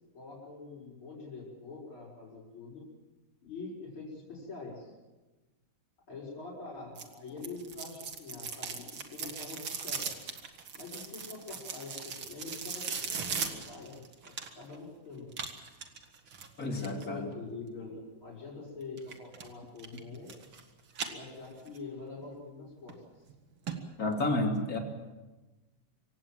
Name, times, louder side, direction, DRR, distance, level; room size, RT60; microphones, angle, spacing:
voice 1, 0.1-2.9 3.4-4.9 6.1-10.1 10.7-15.3 16.7-20.3 21.1-23.0, left 3 dB, 70° left, -6 dB, 6.8 m, -45 dB
sound 1, 7.0-14.8 15.3-17.1 19.0-19.5 19.8-20.6 20.9-21.8 22.2-22.3 22.9-23.0 23.3-23.4 23.7-23.8 24.1-24.2, right 6 dB, 70° right, 2.7 m, -39 dB
voice 2, 16.6-17.3 19.9-20.0 24.0-24.8, left 2 dB, 40° left, 2 dB, 3.4 m, -31 dB
26.0 x 16.5 x 7.6 m, 1.2 s
omnidirectional pair, 2.4 m